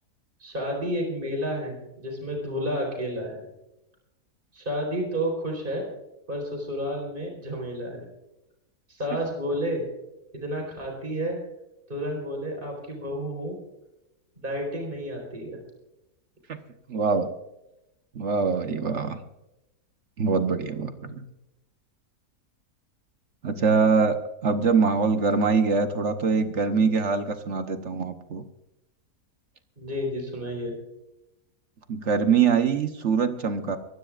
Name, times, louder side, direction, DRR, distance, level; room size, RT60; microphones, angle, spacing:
voice 1, 0.4-3.4 4.5-5.9 6.3-8.1 8.9-9.9 10.3-11.4 11.9-13.6 14.4-15.6 29.8-30.7, equal, 30° right, 1 dB, 4.4 m, -31 dB
voice 2, 16.9-17.3 18.1-19.2 20.2-21.2 23.4-28.4 31.9-33.8, right 5 dB, 50° right, 7 dB, 1.2 m, -23 dB
23.5 x 16.0 x 2.5 m, 0.91 s
omnidirectional pair, 1.7 m